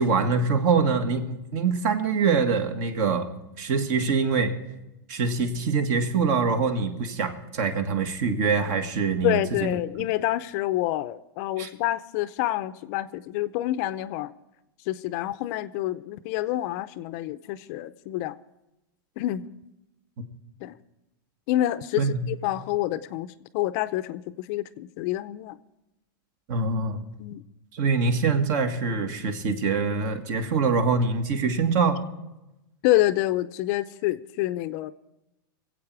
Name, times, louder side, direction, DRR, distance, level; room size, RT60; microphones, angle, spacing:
voice 1, 0.0-3.3 3.6-4.5 5.1-9.7 10.0-10.1 11.6-11.7 22.0-22.2 26.5-27.0 27.7-32.0, right 5 dB, 50° right, 7 dB, 1.7 m, -24 dB
voice 2, 9.2-14.3 14.9-18.3 19.2-19.4 20.6-20.7 21.5-23.3 23.5-25.6 27.2-27.4 32.8-34.9, left 15 dB, 45° left, 14 dB, 0.5 m, -27 dB
24.0 x 8.2 x 4.7 m, 0.94 s
supercardioid pair, 150°, 12 cm